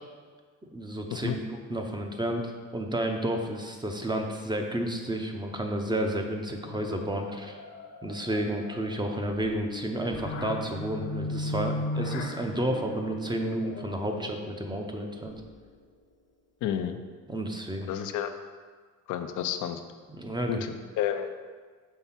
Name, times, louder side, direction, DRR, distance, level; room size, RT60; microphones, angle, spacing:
voice 1, 0.7-7.6 8.0-15.4 17.3-17.9 20.1-20.6, right 1 dB, 15° right, 3 dB, 0.7 m, -31 dB
sound 1, 6.6-15.7, left 2 dB, 55° left, 0.9 m, -38 dB
voice 2, 16.6-17.0 17.9-18.3 19.1-19.8 20.5-21.3, left 9 dB, 85° left, 7 dB, 0.5 m, -30 dB
5.6 x 3.4 x 5.8 m, 1.5 s
cardioid pair, 90°, 30 cm